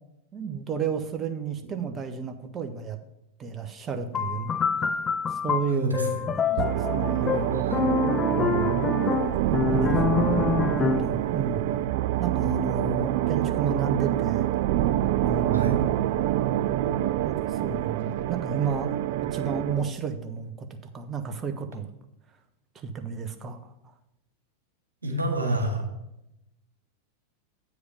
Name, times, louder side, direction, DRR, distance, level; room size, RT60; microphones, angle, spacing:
voice 1, 0.3-3.0 3.4-4.5 5.3-7.6 8.3-8.8 9.7-10.0 10.9-11.7 12.2-14.5 15.2-15.9 17.2-19.0 19.3-20.7 20.9-21.9 22.7-23.7, right 5 dB, 25° right, 6 dB, 0.9 m, -32 dB
sound 1, 4.1-11.2, left 7 dB, 20° left, 0.4 m, -27 dB
voice 2, 5.7-6.2 7.5-7.8 15.5-15.8 25.0-25.8, right 1 dB, 80° right, 1 dB, 1.8 m, -28 dB
sound 2, 6.6-19.9, right 13 dB, 50° right, 0.3 m, -26 dB
8.6 x 4.9 x 6.6 m, 0.87 s
figure-of-eight pair, 90°, 0 cm